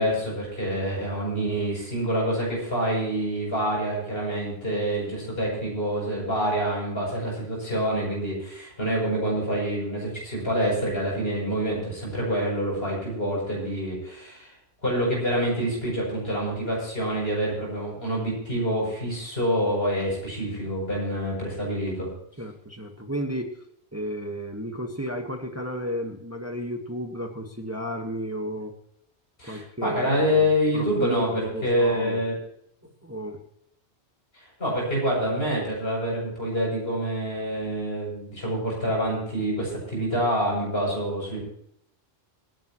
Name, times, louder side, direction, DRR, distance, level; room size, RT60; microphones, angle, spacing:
voice 1, 0.0-14.5 14.8-22.1 29.4-32.3 34.6-41.4, equal, 65° left, -3 dB, 7.6 m, -26 dB
voice 2, 22.4-23.6 23.9-28.7 29.4-30.4 30.7-32.2 33.0-33.4, equal, 15° right, 3 dB, 1.4 m, -33 dB
26.0 x 10.5 x 3.0 m, 0.73 s
omnidirectional pair, 1.1 m